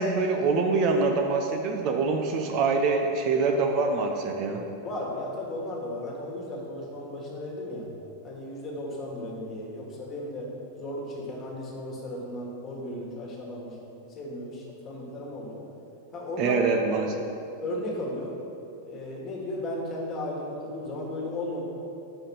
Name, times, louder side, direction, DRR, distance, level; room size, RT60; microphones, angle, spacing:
voice 1, 0.0-4.6 16.4-17.2, right 4 dB, 40° right, 3 dB, 0.6 m, -25 dB
voice 2, 4.8-7.9 8.2-13.8 14.2-15.6 16.1-16.6 17.6-18.4 18.8-21.6, left 1 dB, 30° left, -3 dB, 1.7 m, -35 dB
5.6 x 5.1 x 6.3 m, 2.7 s
figure-of-eight pair, 90°, 0 cm